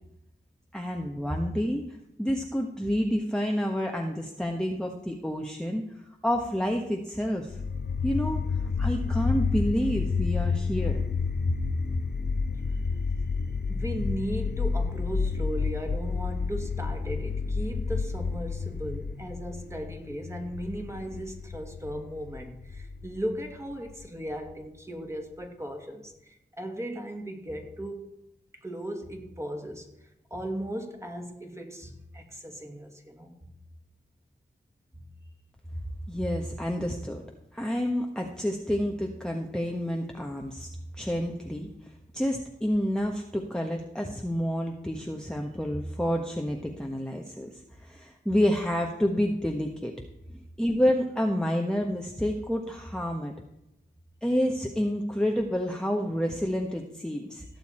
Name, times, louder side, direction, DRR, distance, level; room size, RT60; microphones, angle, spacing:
voice 1, 0.7-1.9 2.2-7.6 8.0-11.0 11.5-11.6 36.1-37.2 37.5-40.7 40.9-49.9 50.6-53.3 54.2-57.4, equal, 5° left, 1 dB, 1.3 m, -29 dB
sound 1, 7.5-24.5, left 4 dB, 55° left, 0.9 m, -30 dB
voice 2, 13.7-28.1 28.6-29.9 30.3-33.4 34.9-35.0 50.3-50.5, equal, 15° right, 2 dB, 2.5 m, -37 dB
16.5 x 7.1 x 4.4 m, 0.87 s
cardioid pair, 45°, 20 cm